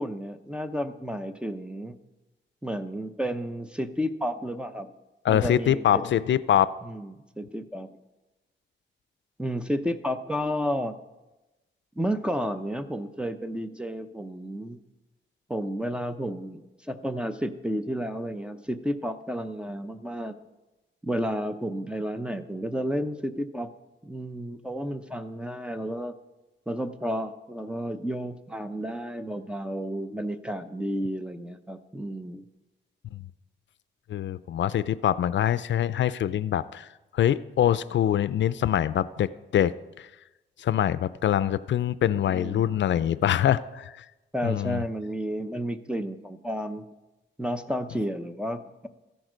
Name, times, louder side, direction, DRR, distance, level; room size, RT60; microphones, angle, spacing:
voice 1, 0.0-2.0 2.6-4.9 5.3-6.0 6.9-7.9 9.4-11.0 12.0-14.8 15.5-20.4 21.0-23.7 24.0-26.2 26.7-32.4 42.3-42.6 44.3-46.9 47.4-48.9, equal, 5° right, 10 dB, 0.6 m, -31 dB
voice 2, 5.2-6.7 33.1-33.2 34.1-40.1 40.6-44.0 44.4-44.8, left 10 dB, 70° left, 16 dB, 0.4 m, -24 dB
14.0 x 10.5 x 5.1 m, 1.0 s
wide cardioid pair, 130°, 20 cm